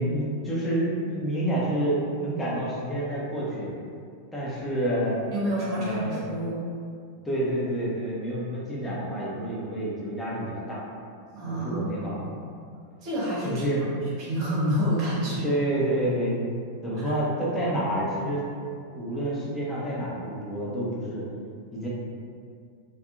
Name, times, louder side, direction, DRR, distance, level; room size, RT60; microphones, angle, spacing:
voice 1, 0.0-3.7 4.3-5.2 5.7-6.2 7.2-10.8 11.5-12.2 13.4-14.0 15.2-16.5 16.8-18.5 18.9-21.3 21.7-21.9, right 1 dB, 10° left, -8 dB, 0.7 m, -28 dB
voice 2, 5.3-6.6 11.3-12.5 13.0-13.6 14.2-15.5, equal, 40° right, -6 dB, 0.8 m, -28 dB
2.6 x 2.4 x 2.4 m, 2.3 s
figure-of-eight pair, 90°, 0 cm